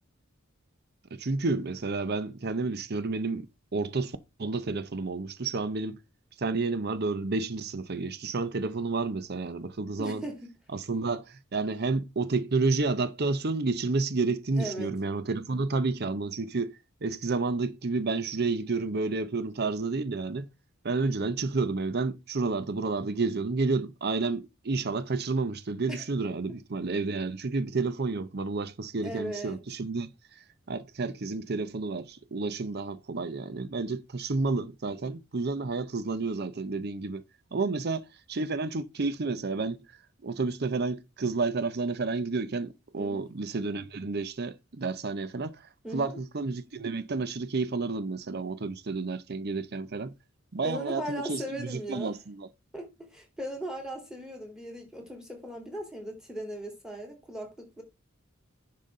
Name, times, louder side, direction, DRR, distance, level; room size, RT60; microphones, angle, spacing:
voice 1, 1.1-3.5 3.7-6.0 6.4-10.2 10.7-20.5 20.8-30.1 30.7-37.2 37.5-39.8 40.2-50.1 50.5-52.5, right 3 dB, 50° right, 0.7 m, -30 dB
voice 2, 10.0-10.5 14.6-14.9 25.9-26.0 29.0-29.6 43.0-43.3 45.8-46.2 50.6-52.1 52.7-57.8, equal, 5° right, 3.0 m, -38 dB
10.5 x 5.7 x 3.7 m
head